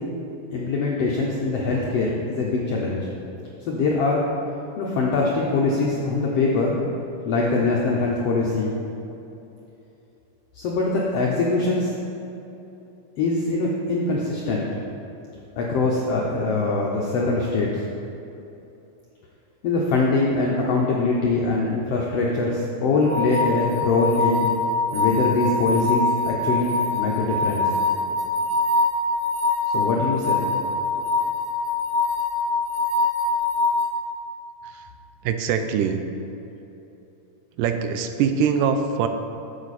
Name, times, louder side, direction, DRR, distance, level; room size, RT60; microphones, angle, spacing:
voice 1, 0.5-3.0 3.6-4.3 4.8-6.8 7.2-8.8 10.5-11.9 13.2-14.7 15.6-17.8 19.6-24.5 24.9-27.7 29.7-30.4, left 3 dB, 80° left, -3 dB, 1.4 m, -23 dB
sound 1, 23.0-33.9, left 3 dB, 65° right, 1.5 m, -24 dB
voice 2, 35.2-36.0 37.6-39.1, right 7 dB, 85° right, 7 dB, 2.1 m, -23 dB
10.0 x 7.3 x 4.1 m, 2.9 s
omnidirectional pair, 3.8 m